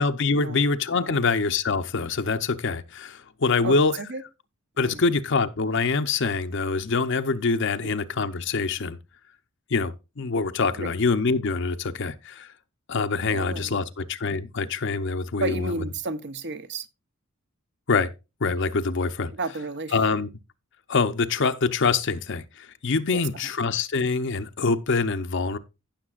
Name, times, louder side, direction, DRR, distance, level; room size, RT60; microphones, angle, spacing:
voice 1, 0.0-4.0 4.8-9.0 9.7-12.5 12.9-15.7 17.9-18.1 18.4-19.3 19.9-20.3 20.9-25.6, left 4 dB, 55° left, 0.7 m, -25 dB
voice 2, 3.6-4.2 4.8-5.0 10.8-10.9 13.3-13.8 15.4-16.9 19.3-20.0 23.1-23.5, right 3 dB, 50° right, 0.8 m, -32 dB
16.0 x 6.6 x 2.4 m
head